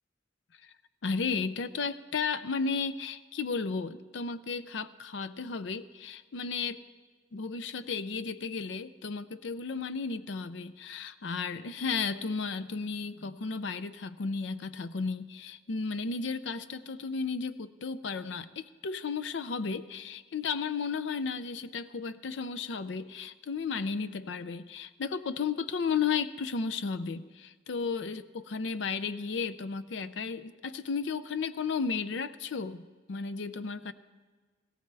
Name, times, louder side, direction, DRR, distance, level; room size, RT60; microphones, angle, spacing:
voice 1, 1.0-6.8 7.3-33.9, left 5 dB, 80° left, 14 dB, 0.5 m, -34 dB
17.5 x 17.0 x 3.4 m, 1.4 s
head